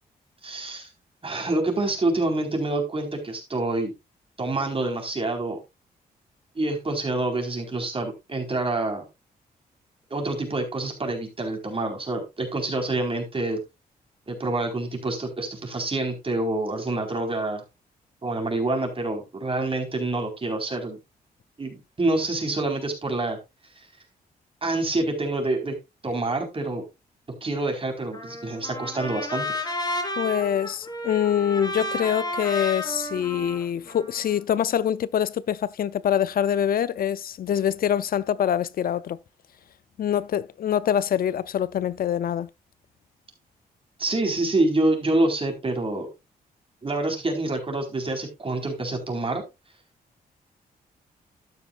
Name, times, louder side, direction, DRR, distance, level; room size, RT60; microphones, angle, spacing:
voice 1, 0.4-0.9 1.2-3.9 4.4-5.6 6.5-9.0 10.1-13.6 14.3-17.6 18.2-21.0 21.6-23.4 24.6-25.8 26.0-26.8 27.4-29.7 44.0-46.1 46.8-49.4, right 2 dB, 35° right, 4.4 m, -27 dB
Trumpet, 28.1-34.4, left 1 dB, 25° left, 3.6 m, -32 dB
voice 2, 30.2-39.2 40.0-42.5, left 9 dB, 60° left, 0.5 m, -25 dB
12.5 x 9.3 x 2.5 m
cardioid pair, 75°, 17 cm